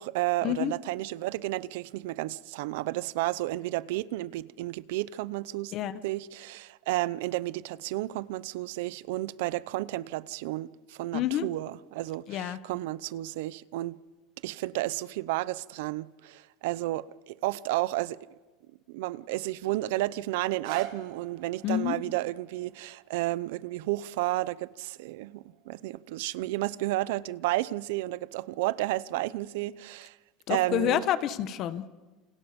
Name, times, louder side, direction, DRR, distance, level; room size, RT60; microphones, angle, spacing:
voice 1, 0.0-5.7 6.0-14.0 14.4-18.2 18.9-30.2 30.5-31.0, right 17 dB, 80° right, 0.7 m, -32 dB
voice 2, 11.1-11.5 12.3-12.6 21.6-22.0 30.5-31.9, left 11 dB, 45° left, 1.3 m, -28 dB
sound 1, 20.6-26.5 27.1-27.2, right 12 dB, 65° right, 2.4 m, -47 dB
29.0 x 27.5 x 5.3 m
supercardioid pair, 150°, 0 cm